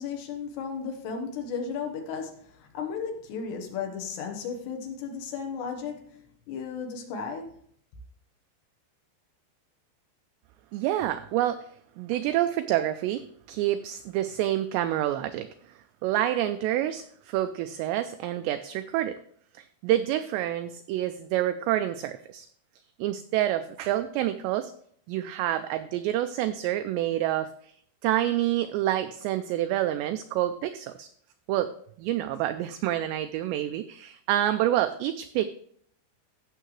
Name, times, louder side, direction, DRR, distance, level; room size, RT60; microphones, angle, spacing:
voice 1, 0.0-7.6, left 6 dB, 70° left, 2 dB, 3.0 m, -35 dB
voice 2, 10.7-11.6 12.0-13.2 13.5-15.5 16.0-19.2 19.6-22.5 23.0-24.7 25.1-27.7 28.0-31.1 31.5-31.7 32.0-35.5, right 13 dB, 90° right, 10 dB, 2.5 m, -27 dB
15.5 x 6.7 x 3.2 m, 0.62 s
omnidirectional pair, 5.5 m